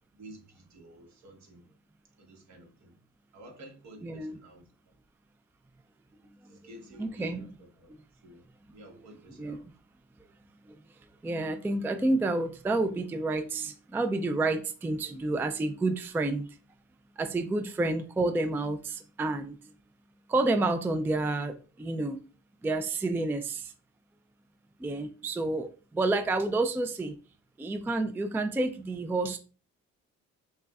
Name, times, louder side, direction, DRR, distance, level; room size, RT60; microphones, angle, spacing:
voice 1, 0.0-1.7 2.2-3.0 3.3-4.7 6.4-7.9 8.2-8.5 8.7-9.7, right 1 dB, 65° right, 1.3 m, -51 dB
voice 2, 4.0-4.3 7.0-7.5 9.4-9.6 10.7-10.8 11.2-16.5 17.2-19.6 20.3-22.2 22.6-23.7 24.8-27.2 27.6-29.4, right 2 dB, 5° right, 0.3 m, -29 dB
6.0 x 2.2 x 2.3 m
cardioid pair, 90°, 30 cm